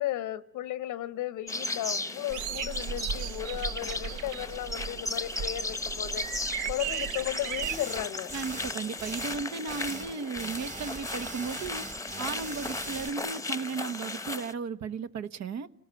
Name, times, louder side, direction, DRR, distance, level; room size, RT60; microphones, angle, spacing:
voice 1, 0.0-8.3, left 13 dB, 85° left, 1.0 m, -35 dB
sound 1, 1.5-14.5, left 2 dB, 10° left, 1.0 m, -36 dB
sound 2, 2.3-7.8, right 8 dB, 85° right, 1.1 m, -36 dB
sound 3, 7.6-8.0 8.3-8.7 9.0-10.1 10.4-13.1, right 3 dB, 25° right, 1.5 m, -42 dB
voice 2, 8.3-11.9 12.2-15.7, right 5 dB, 65° right, 1.3 m, -35 dB
30.0 x 18.5 x 7.7 m
cardioid pair, 90°, 30 cm